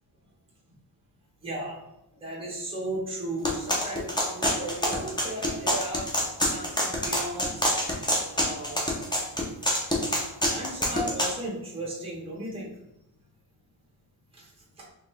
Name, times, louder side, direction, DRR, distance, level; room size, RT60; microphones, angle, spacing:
voice 1, 1.4-1.7 2.2-6.0 6.5-7.9 8.3-9.0 10.4-12.7 14.4-14.5, right 1 dB, 10° right, -4 dB, 1.0 m, -36 dB
sound 1, 3.4-11.3, equal, 10° left, 0.5 m, -26 dB
4.0 x 3.2 x 3.2 m, 0.87 s
wide cardioid pair, 165°, 47 cm